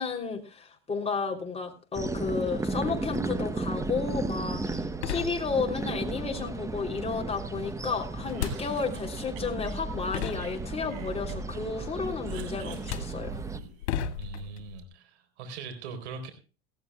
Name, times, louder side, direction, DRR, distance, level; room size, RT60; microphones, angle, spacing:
voice 1, 0.0-13.4, left 5 dB, 20° left, 2 dB, 3.3 m, -32 dB
sound 1, 1.9-13.6, right 2 dB, 10° right, 1.0 m, -34 dB
sound 2, 4.6-4.7 5.0-5.9 8.3-9.1 9.8-9.9 10.1-11.1 12.1-12.4 12.7-14.8, left 8 dB, 80° left, 2.3 m, -35 dB
Cough, 8.2-9.8 10.2-11.6 12.0-13.9, right 8 dB, 65° right, 5.2 m, -47 dB
voice 2, 14.2-16.3, right 4 dB, 85° right, 7 dB, 4.0 m, -41 dB
18.0 x 16.0 x 2.3 m, 0.35 s
supercardioid pair, 110°, 33 cm